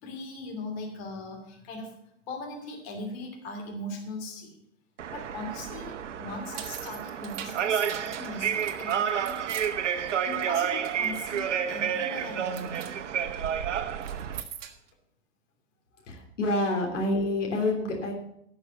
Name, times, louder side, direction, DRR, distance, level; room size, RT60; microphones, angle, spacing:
voice 1, 0.0-2.0 2.3-4.6 5.1-9.4 9.8-12.9 13.5-13.6, left 2 dB, 55° left, 3 dB, 3.0 m, -39 dB
sound 1, 5.0-14.4, right 8 dB, 75° right, 1.0 m, -30 dB
sound 2, 6.3-10.8 11.0-11.5 11.9-12.1 12.4-12.9 13.9-14.9, right 9 dB, 55° right, 1.6 m, -43 dB
voice 2, 16.0-18.1, left 2 dB, 80° left, 1 dB, 3.4 m, -27 dB
12.0 x 6.4 x 7.9 m, 0.72 s
hypercardioid pair, 115°, 37 cm